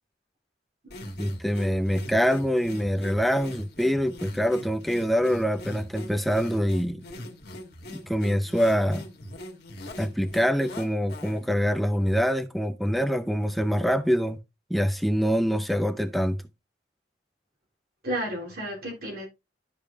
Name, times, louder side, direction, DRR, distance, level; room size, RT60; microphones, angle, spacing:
sound 1, 0.9-11.5, left 1 dB, 60° left, 1.5 m, -41 dB
voice 1, 1.2-7.0 7.9-9.1 10.0-14.4 14.7-16.4, equal, ahead, 0.5 m, -25 dB
voice 2, 18.0-19.3, right 1 dB, 60° right, 2.8 m, -33 dB
12.0 x 5.0 x 2.3 m
head